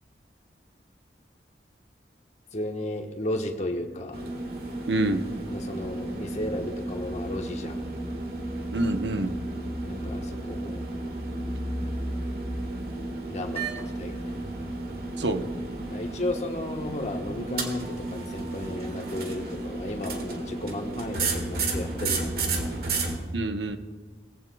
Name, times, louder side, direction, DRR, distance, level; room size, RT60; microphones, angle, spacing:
voice 1, 2.5-4.2 5.5-7.8 9.8-10.8 13.3-13.6 14.0-14.3 15.9-22.7, left 1 dB, 40° left, 3 dB, 1.2 m, -34 dB
sound 1, 4.1-23.2, right 2 dB, 60° right, 1.7 m, -32 dB
voice 2, 4.9-5.2 8.7-9.3 15.2-15.5 23.3-23.8, right 1 dB, 85° right, 7 dB, 1.0 m, -26 dB
20.5 x 15.0 x 2.3 m, 1.6 s
head